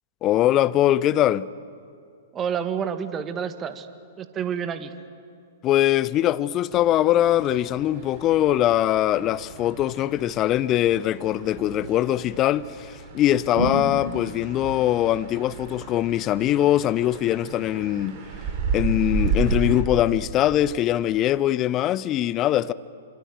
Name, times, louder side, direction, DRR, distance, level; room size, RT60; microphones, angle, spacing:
voice 1, 0.2-1.5 5.6-18.2 18.7-22.7, left 13 dB, 30° left, 0.7 m, -22 dB
voice 2, 2.3-3.9 4.2-4.9, right 7 dB, 25° right, 1.6 m, -29 dB
sound 1, 6.7-19.8, right 4 dB, 40° right, 4.3 m, -32 dB
27.0 x 26.5 x 7.8 m
figure-of-eight pair, 110°, 0 cm